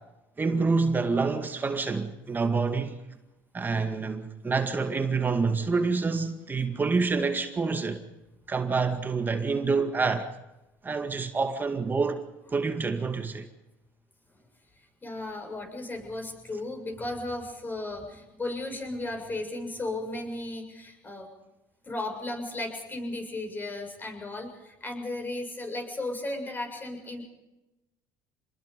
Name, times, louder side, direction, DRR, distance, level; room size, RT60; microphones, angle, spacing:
voice 1, 0.4-3.0 3.5-8.0 8.5-10.3 10.8-12.2 12.5-13.5, right 4 dB, 25° right, 2.1 m, -27 dB
voice 2, 15.0-21.3 21.8-27.2, left 2 dB, 25° left, 7.2 m, -35 dB
27.5 x 21.0 x 5.4 m
supercardioid pair, 105°, 8 cm